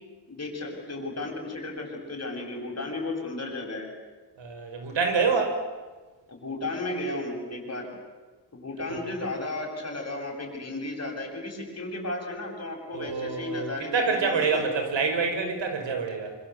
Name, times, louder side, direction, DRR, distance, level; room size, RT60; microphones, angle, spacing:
voice 1, 0.3-3.9 6.3-7.9 8.5-14.7, left 2 dB, 35° left, 1 dB, 7.8 m, -34 dB
voice 2, 4.4-5.6 8.9-9.0 12.9-16.4, right 4 dB, 90° right, 5 dB, 5.6 m, -27 dB
27.0 x 26.0 x 8.4 m, 1.3 s
wide cardioid pair, 110°, 43 cm